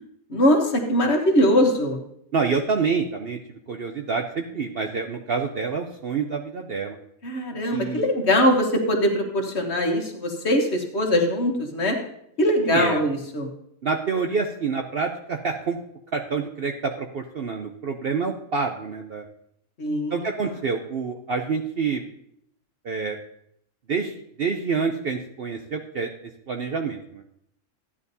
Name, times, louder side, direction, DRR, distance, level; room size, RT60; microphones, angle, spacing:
voice 1, 0.3-2.0 7.2-12.0 12.4-13.5 19.8-20.1, equal, 50° left, 2 dB, 1.6 m, -21 dB
voice 2, 2.3-3.4 3.7-7.0 7.7-8.1 12.6-13.0 13.8-15.8 16.1-19.2 20.1-22.1 22.8-23.2 23.9-24.1 24.4-26.1 26.5-27.2, right 5 dB, 55° right, 3 dB, 0.7 m, -27 dB
14.0 x 9.7 x 2.7 m, 0.74 s
omnidirectional pair, 1.5 m